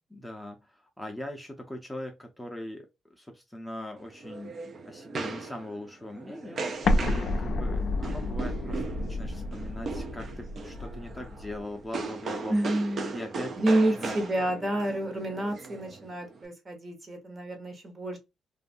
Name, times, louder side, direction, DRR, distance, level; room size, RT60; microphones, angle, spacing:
voice 1, 0.1-12.7 13.1-13.6 14.0-14.2, left 1 dB, 5° left, 0.6 m, -41 dB
sound 1, 4.0-16.4, right 4 dB, 50° right, 0.5 m, -38 dB
Explosion, 6.8-11.6, left 2 dB, 55° left, 0.4 m, -30 dB
voice 2, 12.5-13.1 13.6-18.2, right 1 dB, 35° right, 1.0 m, -29 dB
2.5 x 2.3 x 2.5 m
cardioid pair, 90°, 0 cm